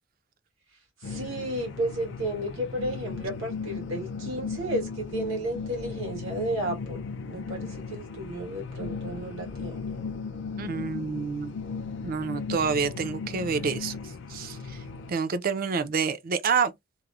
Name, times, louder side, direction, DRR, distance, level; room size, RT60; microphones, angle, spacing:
sound 1, 1.0-15.1, left 5 dB, 60° left, 0.4 m, -36 dB
voice 1, 1.0-9.9, right 1 dB, 85° right, 1.5 m, -33 dB
voice 2, 10.6-11.6 12.0-14.0 14.3-14.8 15.1-16.7, right 5 dB, 45° right, 0.4 m, -28 dB
2.9 x 2.0 x 2.4 m
head